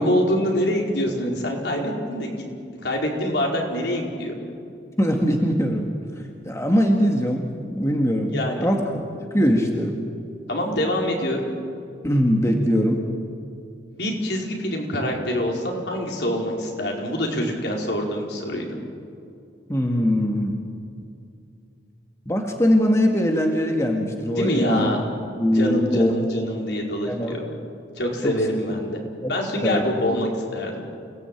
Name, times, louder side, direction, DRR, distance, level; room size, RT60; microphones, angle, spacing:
voice 1, 0.0-2.5 2.8-4.3 8.3-8.7 10.5-11.5 13.9-18.6 24.3-25.0 25.5-27.4 28.0-29.0 29.3-30.8, equal, 65° left, 0 dB, 4.9 m, -25 dB
voice 2, 5.0-5.9 6.4-8.3 8.6-9.1 9.3-9.9 12.0-13.0 19.7-20.6 22.3-24.9 25.4-26.1 27.1-27.3 28.2-28.3 29.2-29.3 29.6-29.8, equal, 15° left, 2 dB, 1.8 m, -21 dB
29.0 x 18.5 x 9.1 m, 2.4 s
head